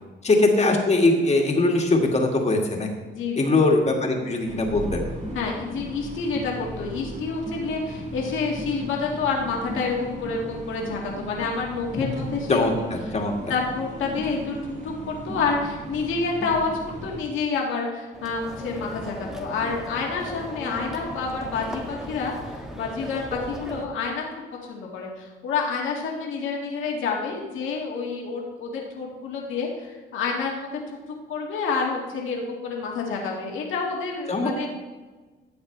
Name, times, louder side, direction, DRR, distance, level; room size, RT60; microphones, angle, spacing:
voice 1, 0.2-2.9 3.4-5.0 12.0-12.1 12.5-13.3 34.3-34.7, left 2 dB, 35° left, 1 dB, 2.0 m, -21 dB
voice 2, 3.1-3.5 5.3-12.6 13.5-24.2 24.7-30.7 31.3-34.7, left 4 dB, 80° left, -1 dB, 2.0 m, -28 dB
sound 1, 4.5-17.2, right 1 dB, 35° right, 3.2 m, -36 dB
sound 2, 18.1-23.9, equal, ahead, 1.6 m, -37 dB
13.0 x 8.0 x 3.3 m, 1.3 s
cardioid pair, 90°, 20 cm